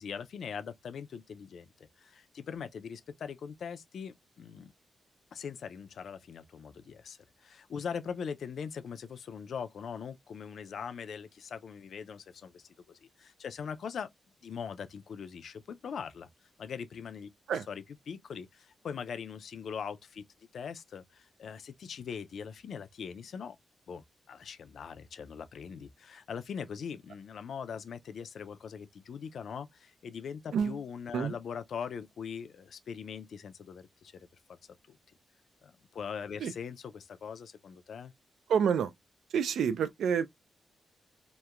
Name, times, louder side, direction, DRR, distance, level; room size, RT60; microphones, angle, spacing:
voice 1, 0.0-1.7 2.0-4.7 5.3-14.1 14.4-16.3 16.6-20.2 20.5-23.6 23.9-34.6 34.9-35.0 35.6-38.1, left 6 dB, 70° left, 0.4 m, -41 dB
voice 2, 38.5-38.9 39.3-40.3, right 7 dB, 85° right, 0.3 m, -28 dB
2.8 x 2.1 x 2.3 m
cardioid pair, 100°, 0 cm